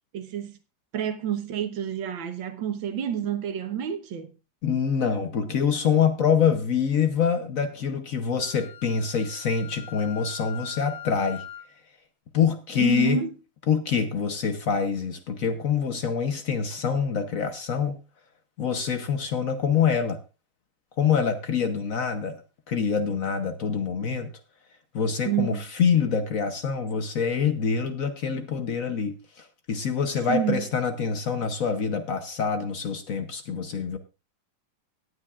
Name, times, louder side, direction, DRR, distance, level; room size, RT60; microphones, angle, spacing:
voice 1, 0.1-0.6 0.9-4.3 12.8-13.3 25.3-25.6 30.3-30.6, right 9 dB, 80° right, 1.8 m, -28 dB
voice 2, 4.6-11.4 12.3-13.2 13.7-18.0 18.6-20.2 21.0-22.4 22.7-24.3 24.9-34.0, left 6 dB, 55° left, 1.1 m, -25 dB
Wind instrument woodwind instrument, 8.4-11.8, left 10 dB, 85° left, 2.0 m, -42 dB
17.5 x 9.7 x 2.4 m
omnidirectional pair, 2.1 m